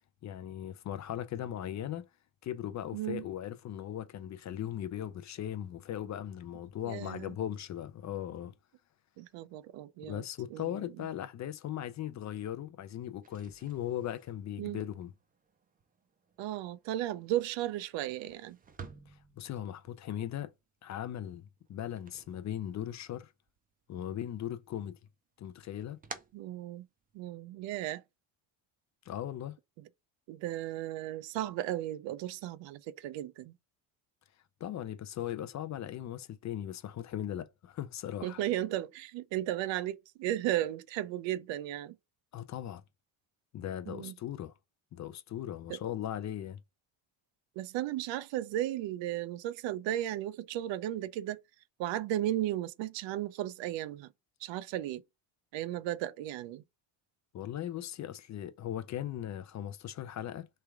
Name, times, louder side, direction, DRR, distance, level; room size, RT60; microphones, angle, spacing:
voice 1, 0.2-2.1 2.4-8.5 10.0-15.1 19.1-20.5 20.8-23.3 23.9-25.0 25.4-26.0 29.1-29.5 34.6-38.4 42.3-42.8 43.5-44.5 44.9-46.6 57.3-60.5, left 11 dB, 40° left, 0.4 m, -38 dB
voice 2, 2.9-3.3 6.9-7.3 9.2-10.2 10.5-10.7 14.6-14.8 16.4-18.6 26.3-26.9 27.1-28.0 30.3-33.5 38.2-42.0 43.9-44.1 45.7-45.8 47.6-51.4 51.8-54.1 54.4-55.0 55.5-56.6, right 13 dB, 70° right, 0.5 m, -35 dB
sound 1, 13.1-23.1 23.4-24.3 24.7-27.3, right 5 dB, 20° right, 0.4 m, -54 dB
3.4 x 3.3 x 4.6 m
cardioid pair, 160°, 46 cm